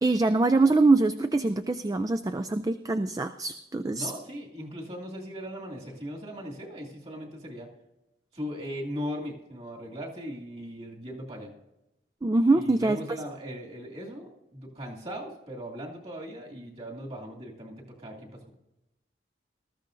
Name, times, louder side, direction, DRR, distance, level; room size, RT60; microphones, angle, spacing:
voice 1, 0.0-4.1 12.2-13.0, right 3 dB, 20° right, 10 dB, 0.3 m, -24 dB
voice 2, 3.9-7.7 8.3-11.5 12.5-18.5, equal, 35° right, -2 dB, 2.4 m, -39 dB
19.5 x 13.5 x 2.6 m, 0.93 s
head